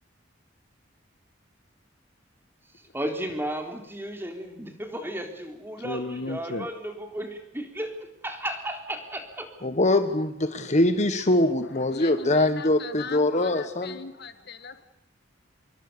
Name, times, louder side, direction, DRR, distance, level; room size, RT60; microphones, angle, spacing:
voice 1, 2.9-7.9 8.2-9.5, right 1 dB, 10° right, 4 dB, 3.8 m, -34 dB
voice 2, 5.8-6.7 11.9-14.8, left 3 dB, 60° left, 11 dB, 1.6 m, -37 dB
voice 3, 9.6-14.0, left 1 dB, 40° left, 9 dB, 1.4 m, -23 dB
26.5 x 22.5 x 6.9 m, 0.81 s
head